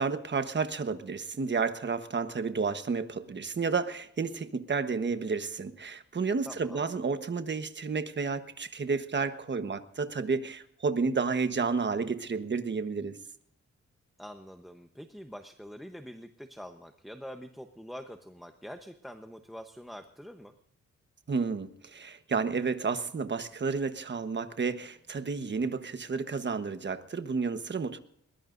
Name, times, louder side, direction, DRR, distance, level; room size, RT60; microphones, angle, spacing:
voice 1, 0.0-13.2 21.3-28.0, right 4 dB, 40° right, 1.2 m, -31 dB
voice 2, 6.4-6.8 14.2-20.5, equal, ahead, 0.9 m, -45 dB
21.5 x 20.5 x 2.6 m
wide cardioid pair, 120°, 29 cm